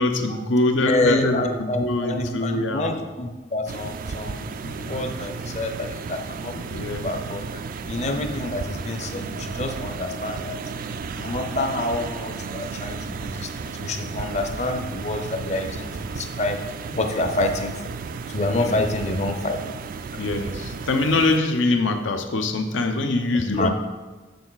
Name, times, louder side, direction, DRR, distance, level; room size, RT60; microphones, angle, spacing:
voice 1, 0.0-3.0 4.6-4.9 6.5-7.0 18.5-18.8 20.2-23.7, left 2 dB, 85° left, 5 dB, 0.8 m, -24 dB
voice 2, 0.8-4.5 4.8-6.5 6.9-7.6 7.9-10.6 11.2-16.6 16.9-17.8 18.3-19.6 23.5-23.7, left 2 dB, 35° left, 6 dB, 0.7 m, -27 dB
sound 1, 3.7-21.4, right 5 dB, 50° right, 0.3 m, -34 dB
6.9 x 6.6 x 4.0 m, 1.3 s
head